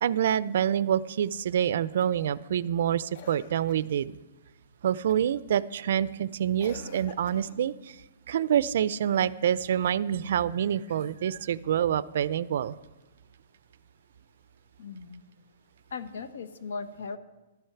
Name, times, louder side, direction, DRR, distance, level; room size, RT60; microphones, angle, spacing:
voice 1, 0.0-4.2 4.8-8.0 8.3-12.7, right 9 dB, 60° right, 18 dB, 0.4 m, -27 dB
Cough, 2.0-2.4 3.1-3.9 5.1-5.4 6.6-7.7 10.8-11.6 13.0-13.1, left 6 dB, 50° left, 0.8 m, -49 dB
voice 2, 14.8-15.2 15.9-17.2, left 4 dB, 80° left, 11 dB, 1.0 m, -38 dB
12.0 x 7.8 x 5.8 m, 1.1 s
hypercardioid pair, 160°, 0 cm